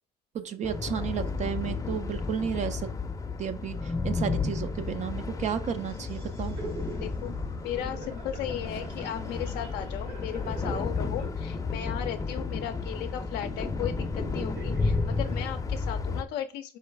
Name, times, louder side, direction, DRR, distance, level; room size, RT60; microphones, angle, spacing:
voice 1, 0.3-2.9 3.4-6.6, right 8 dB, 45° right, 10 dB, 0.4 m, -32 dB
sound 1, 0.6-16.2, left 4 dB, 20° left, 0.5 m, -32 dB
sound 2, 5.4-15.5, right 2 dB, 70° right, 1.8 m, -44 dB
voice 2, 7.0-7.3 7.6-16.8, left 11 dB, 80° left, 6 dB, 0.4 m, -36 dB
4.7 x 3.0 x 3.3 m, 0.35 s
cardioid pair, 110°, 17 cm